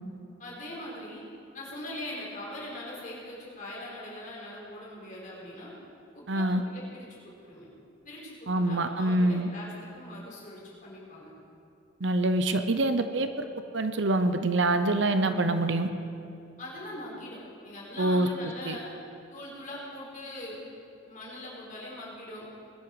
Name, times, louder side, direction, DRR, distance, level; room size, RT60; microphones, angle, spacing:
voice 1, 0.4-1.2 1.5-5.7 6.1-7.7 8.0-11.3 16.6-18.8 19.3-20.6 21.1-22.5, left 1 dB, 40° left, -5 dB, 4.6 m, -41 dB
voice 2, 6.3-6.6 8.5-9.5 12.0-13.5 13.7-15.9 18.0-18.3 18.6-18.8, right 2 dB, 65° right, 9 dB, 0.8 m, -25 dB
20.5 x 10.5 x 4.9 m, 2.6 s
head